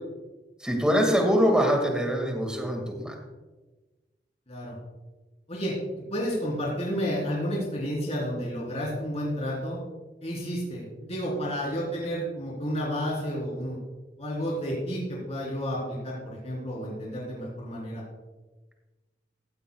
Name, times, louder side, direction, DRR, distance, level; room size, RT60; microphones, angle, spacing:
voice 1, 0.6-3.1, equal, 5° right, 2 dB, 1.9 m, -24 dB
voice 2, 4.5-4.8 5.5-9.8 10.2-13.8 14.2-18.0, equal, 35° left, -4 dB, 3.4 m, -31 dB
15.5 x 13.0 x 2.3 m, 1.2 s
head